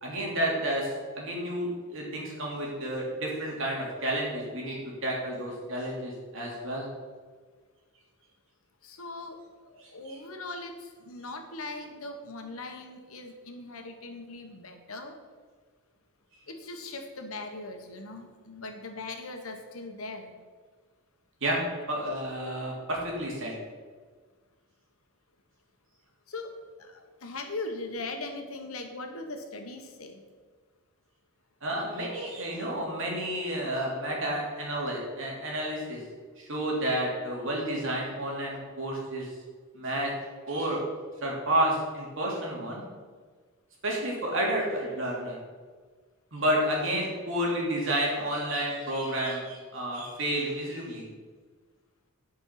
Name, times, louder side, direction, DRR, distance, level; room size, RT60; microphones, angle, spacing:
voice 1, 0.0-6.9 10.1-10.2 21.4-21.6 21.9-23.5 31.6-36.0 36.4-39.3 39.7-40.1 40.5-40.8 41.2-42.8 43.8-45.4 46.3-51.0, right 1 dB, 60° right, -2 dB, 2.8 m, -30 dB
voice 2, 8.8-15.2 16.5-20.3 26.3-30.2, left 2 dB, 75° left, 5 dB, 1.3 m, -40 dB
10.5 x 5.5 x 5.9 m, 1.5 s
head